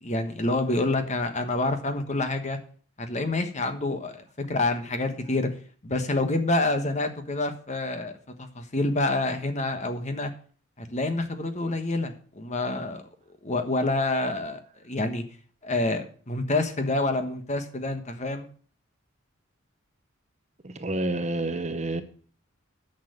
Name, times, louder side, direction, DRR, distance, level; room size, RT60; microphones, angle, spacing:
voice 1, 0.0-2.6 3.0-5.5 5.8-8.1 8.4-10.3 10.8-13.0 13.4-15.2 15.6-18.5, left 2 dB, 35° left, 1.3 m, -27 dB
voice 2, 20.6-22.0, right 2 dB, 35° right, 0.8 m, -29 dB
10.5 x 6.6 x 6.5 m
head